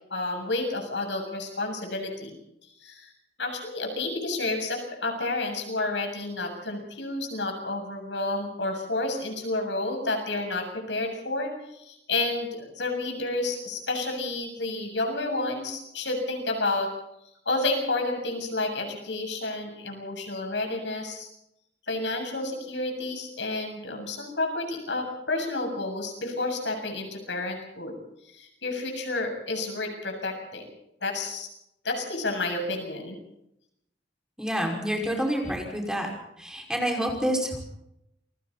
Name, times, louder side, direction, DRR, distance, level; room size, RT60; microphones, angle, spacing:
voice 1, 0.1-2.4 2.8-3.1 3.4-16.9 17.5-21.3 21.9-28.0 28.2-30.7 31.0-31.5 31.8-33.2, left 2 dB, 90° left, 4 dB, 7.4 m, -30 dB
voice 2, 34.4-36.1 36.4-37.6, equal, 5° right, 1 dB, 5.6 m, -28 dB
28.5 x 22.5 x 4.3 m, 0.80 s
head